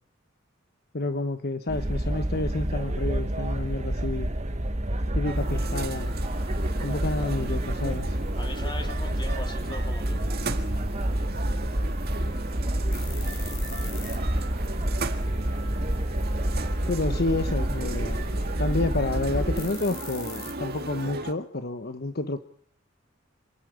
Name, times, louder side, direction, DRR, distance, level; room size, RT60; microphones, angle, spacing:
voice 1, 0.9-4.3 5.1-6.1 6.8-8.3 16.9-18.3 18.6-22.4, left 2 dB, 50° left, 9 dB, 1.1 m, -29 dB
sound 1, 1.7-19.7, right 1 dB, 35° right, 1.5 m, -28 dB
sound 2, 5.2-21.3, right 3 dB, 50° right, 1.8 m, -37 dB
sound 3, 5.3-21.1, left 7 dB, 65° left, 5.3 m, -50 dB
voice 2, 8.4-10.2, left 2 dB, 25° left, 5 dB, 2.8 m, -40 dB
28.0 x 9.9 x 9.9 m, 0.63 s
head